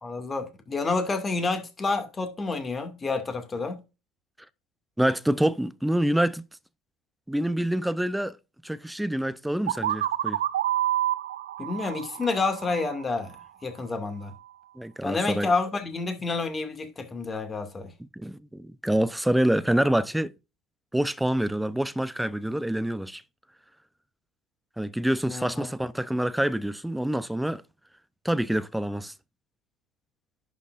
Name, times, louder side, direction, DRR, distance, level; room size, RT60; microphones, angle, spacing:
voice 1, 0.0-3.8 11.6-14.3 15.0-17.9 25.2-25.7, left 3 dB, 25° left, 2.3 m, -29 dB
voice 2, 5.0-6.4 7.3-8.4 8.6-10.4 14.8-15.5 18.1-20.3 20.9-23.2 24.8-27.6 28.2-29.1, right 1 dB, 5° right, 0.7 m, -26 dB
sound 1, 9.7-13.4, right 12 dB, 80° right, 0.4 m, -29 dB
11.0 x 6.1 x 2.6 m
hypercardioid pair, 70°, 0 cm